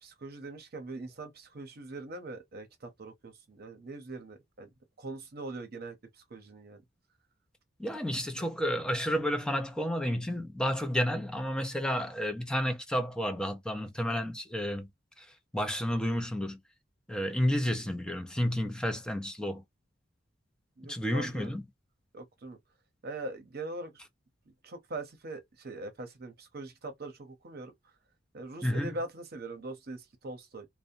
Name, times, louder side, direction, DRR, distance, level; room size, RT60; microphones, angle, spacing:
voice 1, 0.0-4.7 5.0-6.8 20.8-21.5 22.1-22.6 23.0-23.9 24.6-27.7 28.3-30.7, right 2 dB, 50° right, 0.7 m, -42 dB
voice 2, 7.8-14.9 15.2-15.3 15.5-16.6 17.1-19.6 20.8-21.6 28.6-28.9, equal, 5° left, 0.5 m, -31 dB
2.6 x 2.1 x 2.6 m
head